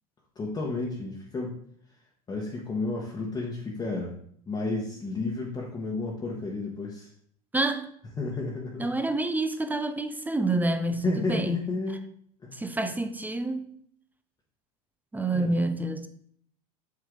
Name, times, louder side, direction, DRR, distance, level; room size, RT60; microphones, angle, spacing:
voice 1, 0.3-1.5 2.3-4.1 4.5-7.1 8.2-8.9 11.0-12.0 12.4-12.6 15.3-15.5, left 3 dB, 20° left, 1.2 m, -32 dB
voice 2, 7.5-7.9 8.8-11.6 12.5-13.7 15.1-16.1, right 2 dB, 10° right, 0.5 m, -28 dB
8.1 x 3.2 x 3.7 m
supercardioid pair, 105°, 19 cm